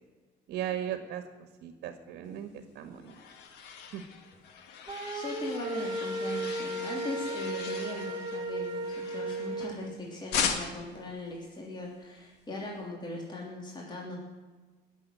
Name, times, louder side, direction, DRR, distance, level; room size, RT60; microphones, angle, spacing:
voice 1, 0.5-1.2 1.6-3.1 3.9-4.0, right 10 dB, 80° right, 8 dB, 1.6 m, -37 dB
sound 1, 2.6-9.9 10.3-11.0, left 7 dB, 85° left, 1.8 m, -38 dB
sound 2, 4.9-9.7, right 2 dB, 25° right, 2.1 m, -35 dB
voice 2, 5.1-14.2, left 2 dB, 25° left, -2 dB, 3.2 m, -39 dB
19.0 x 7.6 x 9.4 m, 1.3 s
cardioid pair, 110°, 17 cm